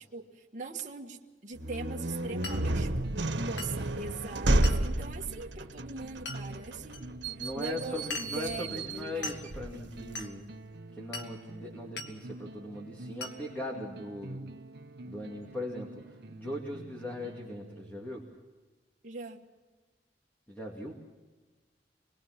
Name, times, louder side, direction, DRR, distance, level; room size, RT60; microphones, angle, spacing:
voice 1, 0.1-7.0 7.3-9.5 19.0-19.4, right 3 dB, 45° right, -1 dB, 1.7 m, -41 dB
sound 1, 1.5-10.2, right 1 dB, 90° right, 1.4 m, -32 dB
Glass, 2.4-2.7 3.6-3.8 4.6-4.9 6.3-6.4 6.9-7.0 8.1-8.4 9.2-9.5 10.2-10.3 11.1-11.4 12.0-12.2 13.2-13.4, left 3 dB, 75° left, 2.0 m, -39 dB
sound 2, 2.4-18.3, right 1 dB, 65° right, 0.9 m, -47 dB
voice 2, 7.4-10.5 11.0-14.5 15.0-16.0 16.3-18.2 20.5-21.0, left 1 dB, 10° left, -2 dB, 2.5 m, -39 dB
26.0 x 20.5 x 6.1 m, 1.3 s
head